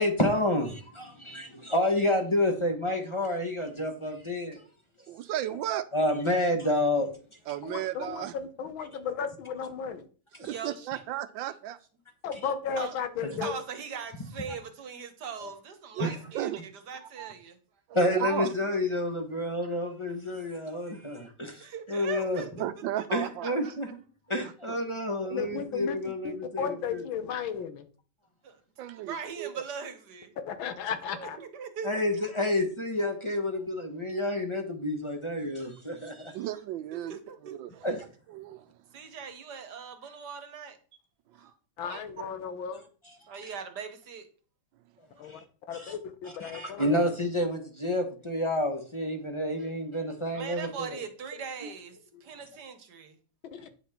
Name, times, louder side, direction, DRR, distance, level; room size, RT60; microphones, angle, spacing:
voice 1, 0.0-4.6 5.9-7.1 13.4-13.5 15.4-15.5 16.0-16.2 17.9-22.4 23.1-23.9 24.3-27.0 31.8-36.3 37.8-38.1 43.4-43.5 45.2-45.4 45.7-45.9 46.4-51.0, left 1 dB, 20° left, 1.1 m, -29 dB
voice 2, 5.1-5.8 7.5-8.3 10.4-11.8 16.0-16.6 17.0-17.3 17.9-18.5 22.6-23.6 24.4-24.8 28.8-29.6 36.3-37.2 37.6-37.9 38.3-38.7 41.9-42.0, right 12 dB, 80° right, 1.3 m, -34 dB
voice 3, 7.6-10.1 12.2-13.5 25.3-27.9 30.5-31.4 41.8-42.8 45.2-47.0 53.5-53.7, left 7 dB, 85° left, 1.8 m, -35 dB
voice 4, 10.4-11.0 12.8-12.9 13.3-17.6 21.6-22.6 23.0-23.7 28.4-30.3 31.1-32.0 36.9-37.8 38.9-40.8 41.3-41.5 43.3-44.3 50.3-53.2, right 6 dB, 60° right, 1.5 m, -41 dB
9.0 x 5.8 x 4.4 m
omnidirectional pair, 2.1 m